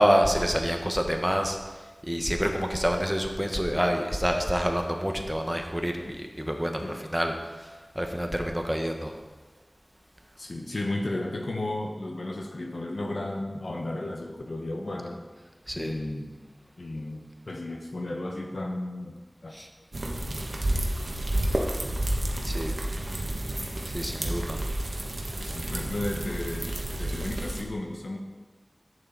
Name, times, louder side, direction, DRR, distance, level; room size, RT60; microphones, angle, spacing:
voice 1, 0.0-9.2 15.7-16.0 19.5-19.7 22.4-22.8 23.9-24.6, equal, 5° right, 3 dB, 1.3 m, -27 dB
voice 2, 10.4-15.2 15.7-16.3 16.8-19.5 24.2-24.4 25.4-26.7 27.0-28.2, left 1 dB, 75° left, 2 dB, 1.4 m, -34 dB
sound 1, 19.9-27.6, right 1 dB, 70° right, 1.4 m, -30 dB
11.0 x 8.8 x 4.2 m, 1.3 s
wide cardioid pair, 45°, 0 cm